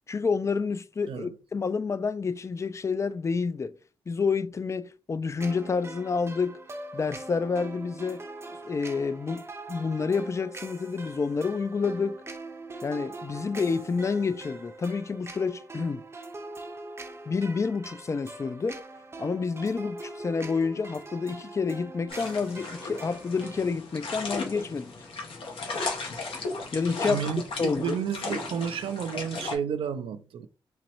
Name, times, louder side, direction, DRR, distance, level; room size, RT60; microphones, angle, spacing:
voice 1, 0.1-3.7 4.1-6.6 6.9-8.2 8.6-9.4 9.7-12.2 12.8-16.0 17.3-18.8 19.2-24.9 26.7-27.2 27.6-28.0, left 5 dB, 30° left, 0.4 m, -29 dB
sound 1, 5.4-23.7, right 2 dB, 30° right, 0.6 m, -42 dB
sound 2, 22.1-29.5, left 3 dB, 75° left, 1.0 m, -36 dB
voice 2, 27.1-30.5, right 7 dB, 75° right, 0.4 m, -31 dB
4.0 x 3.0 x 2.9 m
cardioid pair, 95°, 9 cm